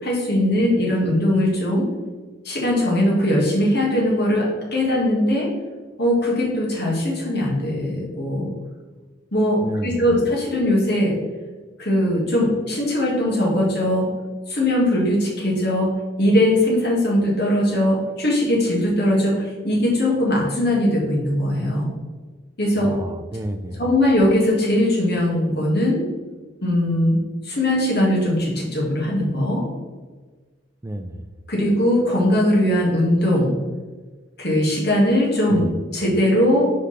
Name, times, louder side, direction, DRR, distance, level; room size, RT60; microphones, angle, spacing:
voice 1, 0.0-1.8 2.4-5.5 6.0-8.5 9.3-11.1 11.8-14.1 14.5-15.9 16.2-21.9 22.6-22.9 23.8-26.0 26.6-27.2 27.4-29.6 31.5-33.5 34.4-35.6 35.9-36.6, left 1 dB, 55° left, -5 dB, 1.8 m, -20 dB
voice 2, 9.6-10.1 22.8-23.8 30.8-31.2 35.5-35.8, right 1 dB, 15° right, 7 dB, 0.3 m, -31 dB
5.3 x 4.9 x 4.1 m, 1.4 s
head